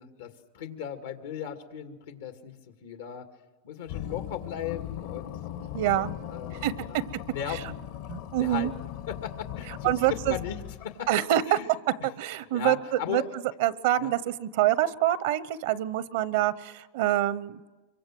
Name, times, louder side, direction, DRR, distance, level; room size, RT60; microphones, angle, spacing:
voice 1, 0.0-3.3 3.6-5.4 5.9-7.8 8.4-11.1 11.5-11.7 12.0-12.1 12.5-13.3 14.0-14.1, left 9 dB, 90° left, 6 dB, 2.2 m, -37 dB
sound 1, 3.9-11.1, left 11 dB, 65° left, 1.2 m, -38 dB
voice 2, 5.7-6.1 6.6-7.0 8.1-8.7 9.8-10.3 11.1-11.6 12.0-13.2 13.6-17.7, right 13 dB, 70° right, 17 dB, 0.8 m, -26 dB
25.5 x 23.5 x 7.6 m, 1.2 s
supercardioid pair, 125°, 0 cm